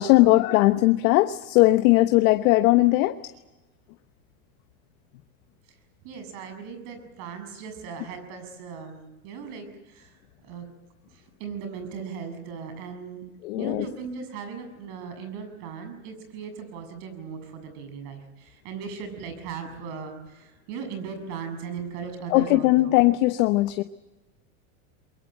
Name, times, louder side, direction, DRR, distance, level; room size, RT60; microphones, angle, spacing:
voice 1, 0.0-3.2 13.4-13.9 22.3-23.8, left 18 dB, 70° left, 9 dB, 1.1 m, -19 dB
voice 2, 6.0-10.6 11.1-13.2 13.6-23.0, right 6 dB, 60° right, 8 dB, 7.2 m, -38 dB
23.5 x 23.0 x 8.0 m, 1.1 s
supercardioid pair, 125°, 43 cm